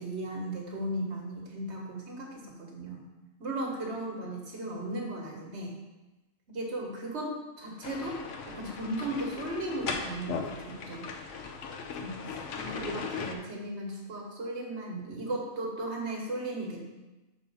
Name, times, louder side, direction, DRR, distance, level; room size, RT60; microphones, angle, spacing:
voice 1, 0.0-3.0 3.4-5.8 6.5-11.1 12.0-16.9, right 1 dB, 55° right, -1 dB, 1.6 m, -36 dB
sound 1, 7.8-13.3, left 5 dB, 70° left, 1.0 m, -38 dB
6.0 x 4.3 x 5.5 m, 1.1 s
omnidirectional pair, 1.4 m